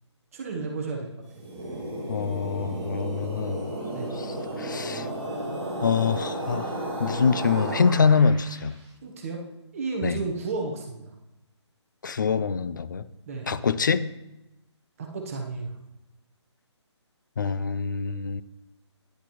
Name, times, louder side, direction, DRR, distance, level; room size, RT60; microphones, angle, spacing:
voice 1, 0.3-1.1 3.9-4.1 9.0-9.4 9.7-11.0 13.3-13.5 15.0-15.7, right 3 dB, 30° right, 1 dB, 1.1 m, -32 dB
sound 1, 1.3-8.7, right 1 dB, 15° right, 2.6 m, -33 dB
voice 2, 2.1-3.7 4.2-5.1 5.8-6.7 7.0-8.8 10.0-10.2 12.0-13.0 13.5-14.0 17.4-18.4, left 5 dB, 40° left, 15 dB, 0.4 m, -25 dB
10.5 x 8.3 x 3.1 m, 0.94 s
hypercardioid pair, 165°, 15 cm